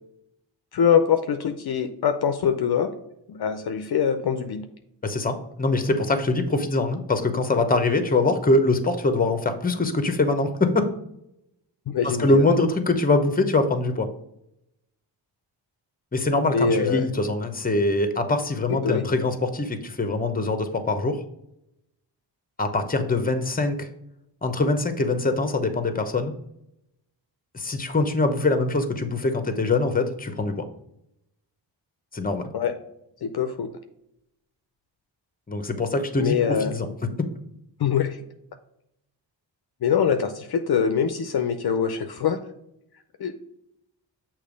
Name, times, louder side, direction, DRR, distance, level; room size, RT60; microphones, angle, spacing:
voice 1, 0.7-2.9 3.3-4.6 11.9-12.4 16.5-17.1 18.7-19.0 32.5-32.7 33.2-33.7 36.2-36.7 37.8-38.2 39.8-42.4 43.2-43.3, left 7 dB, 55° left, 7 dB, 0.6 m, -23 dB
voice 2, 5.0-10.9 12.0-14.1 16.1-21.2 22.6-23.9 24.4-26.3 27.5-30.6 32.1-32.5 35.5-36.9, left 2 dB, 20° left, 8 dB, 0.8 m, -23 dB
6.7 x 3.0 x 5.1 m, 0.80 s
cardioid pair, 65°, 45 cm